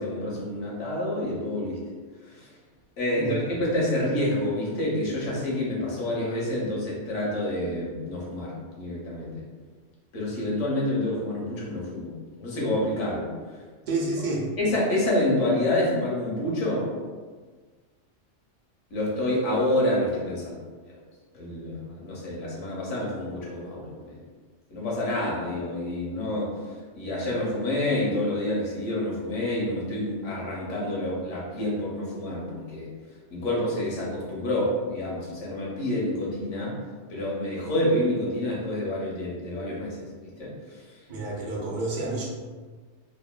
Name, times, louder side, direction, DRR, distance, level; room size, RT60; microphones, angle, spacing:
voice 1, 0.0-1.8 2.2-2.5 3.0-9.4 10.1-12.1 12.4-13.3 14.6-16.9 18.9-21.0 21.3-24.2 24.7-26.5 26.9-32.9 33.3-36.7 37.1-40.8, left 1 dB, 85° left, -4 dB, 1.1 m, -28 dB
voice 2, 13.8-14.5 16.5-16.6 41.1-42.3, right 2 dB, 55° right, -4 dB, 0.5 m, -29 dB
2.9 x 2.1 x 2.2 m, 1.4 s
omnidirectional pair, 1.2 m